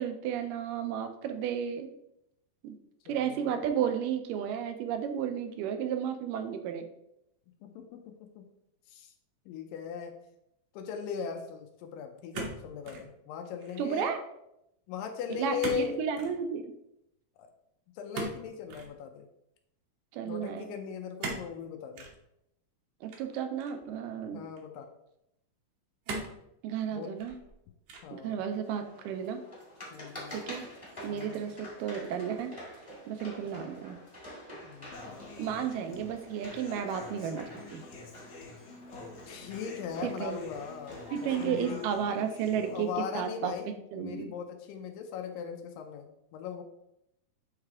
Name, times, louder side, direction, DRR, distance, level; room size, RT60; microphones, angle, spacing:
voice 1, 0.0-1.9 2.6-2.8 3.1-6.9 13.8-14.2 15.4-16.6 20.1-20.7 23.0-24.5 26.6-27.4 28.1-29.4 30.3-30.7 31.0-32.5 33.1-34.0 35.4-37.8 40.0-40.4 41.1-42.9 43.2-43.5 43.9-44.3, right 8 dB, 85° right, 7 dB, 2.2 m, -33 dB
voice 2, 3.1-3.6 7.6-8.5 8.9-9.1 9.5-10.2 10.7-14.1 14.9-16.0 17.4-17.5 18.0-19.3 20.2-22.1 24.3-24.9 26.9-27.2 28.0-28.4 29.9-30.4 31.1-31.5 34.6-36.0 39.3-41.9 42.7-46.6, left 7 dB, 90° left, 3 dB, 2.3 m, -39 dB
sound 1, 12.3-13.1 13.4-13.9 15.6-15.9 16.1-16.4 18.1-18.9 21.2-21.5 21.9-22.2 23.1-23.9 24.6-24.7 26.0-26.4 27.0-27.5 27.9-28.2, right 3 dB, 70° right, 1.6 m, -39 dB
sound 2, 28.6-41.7, equal, 15° left, 1.0 m, -48 dB
Human voice / Acoustic guitar, 34.9-42.9, left 3 dB, 65° left, 2.0 m, -48 dB
8.4 x 3.3 x 3.5 m, 0.81 s
omnidirectional pair, 3.8 m